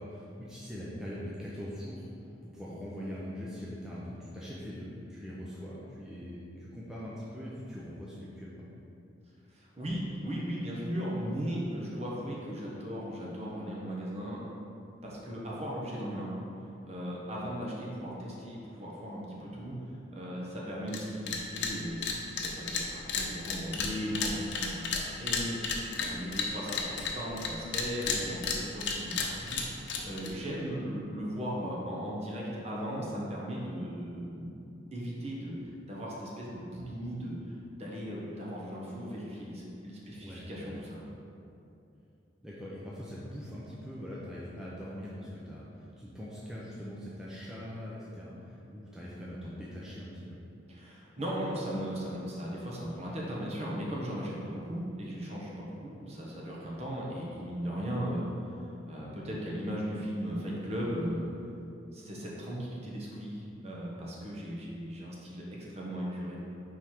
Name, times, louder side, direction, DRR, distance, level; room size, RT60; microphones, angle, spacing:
voice 1, 0.0-2.1 2.4-8.7 23.7-24.0 26.1-26.6 40.2-40.8 42.4-50.4, equal, 5° right, -8 dB, 0.6 m, -42 dB
voice 2, 9.5-14.4 15.0-16.3 16.8-19.7 20.1-34.5 34.9-35.6 35.9-41.0 50.7-61.2 61.9-66.4, equal, 35° right, -4 dB, 1.2 m, -37 dB
sound 1, 20.9-21.0 21.3-21.7 22.0-27.5 27.7-30.3, left 5 dB, 70° left, 0.8 m, -32 dB
5.6 x 4.8 x 4.4 m, 2.7 s
head